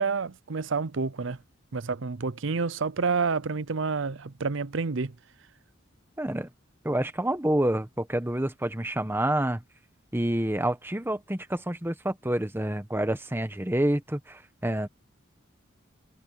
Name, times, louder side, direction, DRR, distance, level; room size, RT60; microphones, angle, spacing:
voice 1, 0.0-1.4 1.7-5.1, right 4 dB, 65° right, 0.7 m, -29 dB
voice 2, 6.2-6.5 6.8-9.6 10.1-14.9, right 1 dB, 10° right, 1.1 m, -28 dB
head